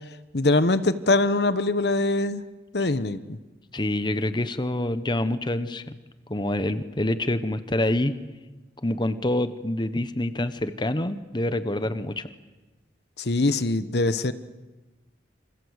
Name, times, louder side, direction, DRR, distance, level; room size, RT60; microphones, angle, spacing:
voice 1, 0.3-2.4 2.7-3.4 13.2-14.3, left 2 dB, 60° left, 13 dB, 1.1 m, -23 dB
voice 2, 3.7-6.0 6.3-8.1 8.8-12.3, left 1 dB, 25° left, 12 dB, 1.0 m, -26 dB
27.5 x 26.0 x 8.2 m, 1.2 s
head